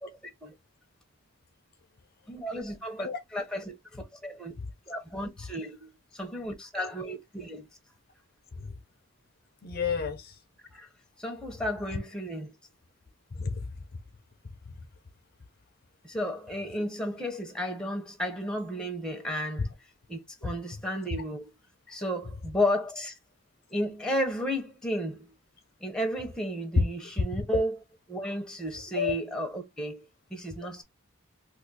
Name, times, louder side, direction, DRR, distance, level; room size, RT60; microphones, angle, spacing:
voice 1, 2.3-4.5 4.9-7.7 10.7-10.9 11.2-12.5 16.0-19.7 20.1-21.5 21.9-23.2 23.7-25.3 25.8-27.8 28.1-30.8, equal, 5° left, 0.7 m, -33 dB
voice 2, 9.6-10.4 13.4-13.7 14.7-14.8 20.4-20.5 21.1-21.2 26.8-26.9 27.5-27.6 28.9-29.1, left 5 dB, 45° left, 0.5 m, -29 dB
2.6 x 2.5 x 3.9 m
head